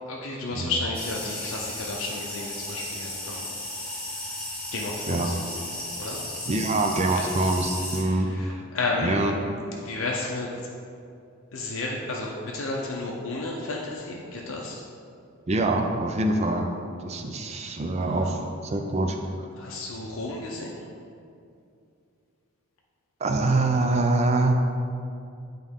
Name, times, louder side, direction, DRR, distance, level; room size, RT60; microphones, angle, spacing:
voice 1, 0.1-3.5 4.7-6.2 7.1-7.4 8.0-9.3 9.8-10.7 11.5-14.9 18.0-18.1 19.6-20.8, left 2 dB, 65° left, -2 dB, 0.6 m, -32 dB
sound 1, 0.9-8.0, left 1 dB, 5° left, 0.8 m, -35 dB
voice 2, 6.5-8.6 9.0-9.3 15.5-16.7 17.0-19.5 23.2-24.5, right 2 dB, 30° right, 4 dB, 0.4 m, -25 dB
8.6 x 3.8 x 3.6 m, 2.5 s
head